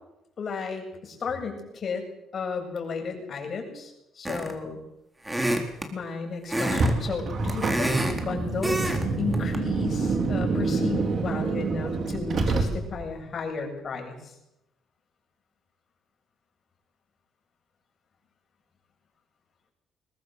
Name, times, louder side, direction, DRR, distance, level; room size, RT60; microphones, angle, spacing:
voice 1, 0.4-2.1 2.3-4.8 5.9-14.4, left 5 dB, 50° left, 3 dB, 7.8 m, -34 dB
sound 1, 4.2-4.7 5.2-5.9 6.5-6.9 7.2-8.2 8.6-9.0 9.3-9.6, right 1 dB, 10° right, 4.2 m, -27 dB
Car, 6.6-13.1, right 3 dB, 55° right, 4.5 m, -27 dB
22.5 x 19.0 x 8.1 m, 0.87 s
cardioid pair, 90°, 0 cm